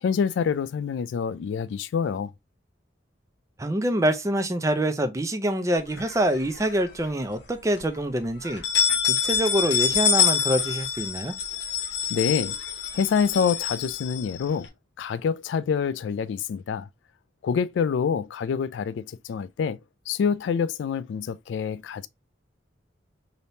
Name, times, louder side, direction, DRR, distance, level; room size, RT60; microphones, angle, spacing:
voice 1, 0.0-2.3 12.1-12.6 12.9-14.7 15.0-16.9 17.4-19.8 20.1-22.1, left 6 dB, 85° left, 0.3 m, -26 dB
voice 2, 3.6-8.6 9.1-11.3, right 1 dB, 15° right, 0.4 m, -25 dB
sound 1, 6.0-6.9 7.3-7.4 7.8-7.9 8.4-14.7, left 7 dB, 70° left, 0.9 m, -26 dB
3.4 x 2.7 x 2.6 m
head